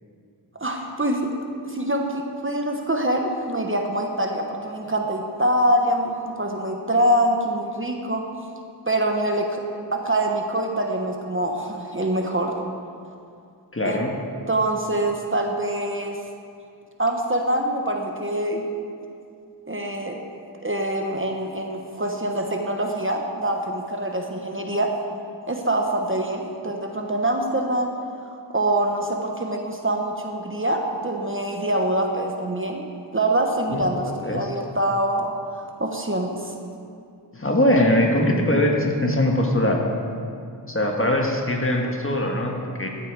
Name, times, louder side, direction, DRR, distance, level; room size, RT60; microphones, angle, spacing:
voice 1, 0.6-1.3 1.6-8.3 8.9-9.6 9.9-12.5 13.8-14.1 14.5-16.2 17.0-18.7 19.7-20.2 20.6-24.9 25.5-27.9 28.3-32.8 33.1-35.3 35.8-36.5, right 1 dB, 30° right, 2 dB, 1.1 m, -24 dB
voice 2, 13.7-14.1 33.7-33.8 34.2-34.5 37.3-39.8 40.7-42.9, left 1 dB, 30° left, 1 dB, 1.6 m, -21 dB
14.0 x 8.8 x 4.8 m, 2.4 s
wide cardioid pair, 60°, 42 cm